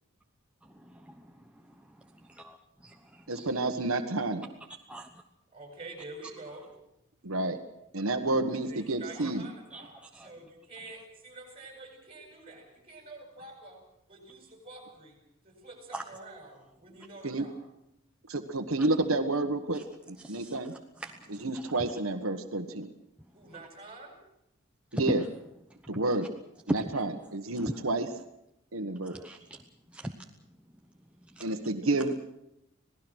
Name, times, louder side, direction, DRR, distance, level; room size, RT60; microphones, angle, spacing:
voice 1, 0.6-2.2 2.4-2.6 3.0-3.5 4.9-5.1 9.7-10.3 15.9-16.0 18.8-18.9 19.7-19.8 20.2-20.6 21.0-21.7 24.9-25.2 25.8-25.9 27.6-27.8 29.0-29.6 29.9-30.1 31.3-31.5, right 1 dB, 5° right, 2 dB, 1.0 m, -41 dB
voice 2, 3.3-4.5 7.2-7.6 7.9-9.5 17.2-17.4 18.3-19.8 20.1-20.7 21.4-22.9 24.9-25.2 25.9-26.3 26.7-28.1 28.7-29.2 31.4-32.2, right 2 dB, 80° right, 6 dB, 1.5 m, -30 dB
voice 3, 5.5-6.7 8.5-13.8 14.1-15.2 15.4-17.5 23.3-24.2, right 2 dB, 25° right, 2 dB, 8.0 m, -47 dB
27.0 x 18.5 x 6.4 m, 0.83 s
head